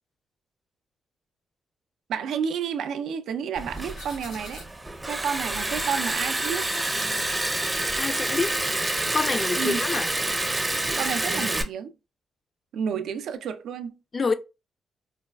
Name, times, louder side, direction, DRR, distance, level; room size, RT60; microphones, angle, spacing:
voice 1, 2.1-4.7 5.1-6.7 9.6-9.8 11.0-11.9 12.7-14.0, right 7 dB, 80° right, 0.3 m, -30 dB
Liquid, 3.6-11.6, right 2 dB, 20° right, 0.5 m, -28 dB
sound 1, 3.7-10.0, left 2 dB, 85° left, 1.9 m, -46 dB
voice 2, 8.0-8.5 9.1-10.1 14.1-14.3, left 4 dB, 40° left, 0.4 m, -26 dB
3.9 x 2.2 x 2.2 m
cardioid pair, 65°, 0 cm